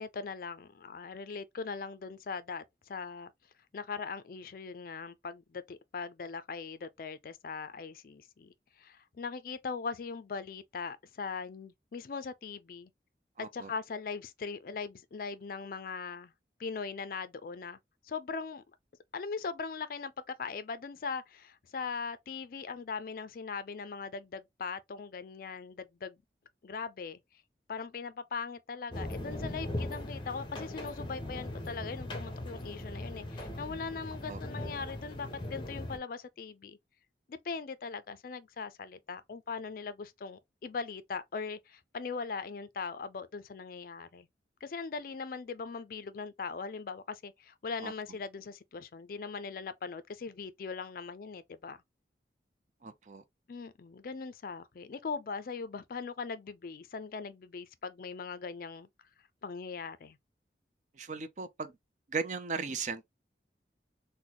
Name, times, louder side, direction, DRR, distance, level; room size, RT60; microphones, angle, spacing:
voice 1, 0.0-3.3 3.7-12.9 13.4-16.3 16.6-17.8 18.0-18.6 19.1-20.1 20.4-26.2 26.6-27.2 27.7-36.8 37.3-44.3 44.6-51.8 53.5-58.9 59.4-60.2, left 5 dB, 50° left, 0.4 m, -40 dB
voice 2, 13.4-13.7 34.3-34.4 47.8-47.9 52.8-53.2 60.9-61.7 62.1-63.2, right 5 dB, 45° right, 0.5 m, -37 dB
sound 1, 28.9-36.0, left 1 dB, 25° left, 0.8 m, -39 dB
3.8 x 2.1 x 2.9 m
head